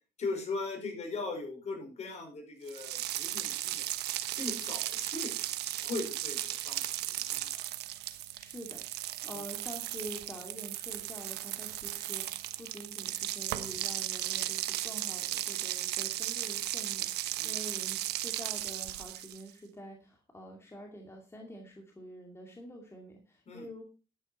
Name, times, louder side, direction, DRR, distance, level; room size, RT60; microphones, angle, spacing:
voice 1, 0.2-3.9 4.3-5.3 5.8-7.5 9.3-9.4 17.4-17.5 23.5-23.7, left 3 dB, 40° left, 3 dB, 5.6 m, -39 dB
sound 1, 2.7-19.5, right 14 dB, 80° right, 1.1 m, -36 dB
voice 2, 8.3-23.8, equal, 15° left, 1 dB, 2.4 m, -47 dB
12.0 x 9.1 x 4.4 m, 0.32 s
cardioid pair, 110°, 17 cm